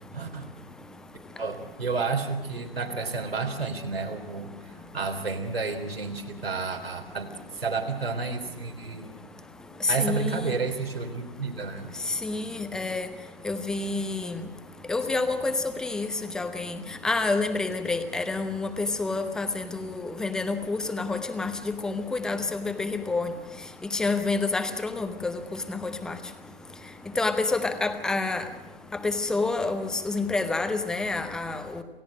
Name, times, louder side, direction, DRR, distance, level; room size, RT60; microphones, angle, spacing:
voice 1, 0.1-0.4 1.4-9.1 9.9-11.9, right 4 dB, 75° right, 3 dB, 3.7 m, -31 dB
voice 2, 10.0-10.5 12.2-13.1 13.4-14.4 14.9-16.1 16.3-16.8 17.0-23.3 23.9-25.4 25.7-26.2 27.2-28.4 29.0-31.8, left 3 dB, ahead, 9 dB, 0.7 m, -28 dB
28.0 x 16.5 x 6.3 m, 1.0 s
figure-of-eight pair, 135°, 30 cm